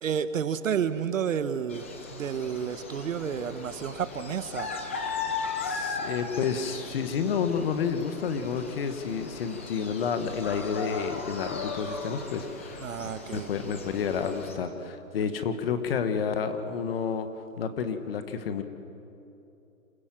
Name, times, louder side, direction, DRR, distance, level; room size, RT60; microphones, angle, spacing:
voice 1, 0.0-1.9 2.1-4.7 12.8-13.5, right 7 dB, 65° right, 12 dB, 1.2 m, -30 dB
sound 1, 1.7-14.5, left 4 dB, 10° left, 0.5 m, -37 dB
voice 2, 5.6-12.8 13.3-17.3 17.6-18.6, left 6 dB, 40° left, 9 dB, 1.6 m, -30 dB
26.5 x 16.0 x 7.6 m, 2.9 s
hypercardioid pair, 155°, 43 cm